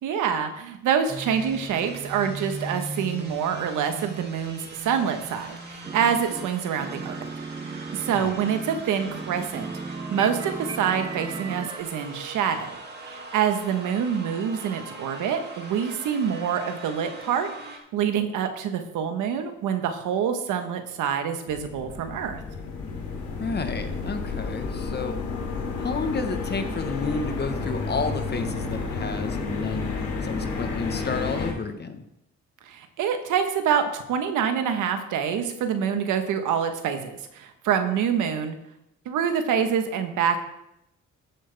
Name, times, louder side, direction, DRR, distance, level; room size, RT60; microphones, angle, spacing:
voice 1, 0.0-7.2 7.6-22.4 32.6-38.6 39.0-40.4, right 8 dB, 85° right, 7 dB, 1.3 m, -26 dB
sound 1, 1.1-17.8, right 3 dB, 35° right, 2.3 m, -40 dB
sound 2, 5.8-6.5 6.8-11.8, right 4 dB, 15° right, 0.4 m, -36 dB
sound 3, 21.5-31.5, left 4 dB, 80° left, 2.8 m, -31 dB
voice 2, 23.4-25.2 25.8-29.9 30.2-32.0, left 4 dB, 35° left, 8 dB, 1.2 m, -31 dB
13.5 x 7.8 x 3.5 m, 0.85 s
cardioid pair, 90°, 30 cm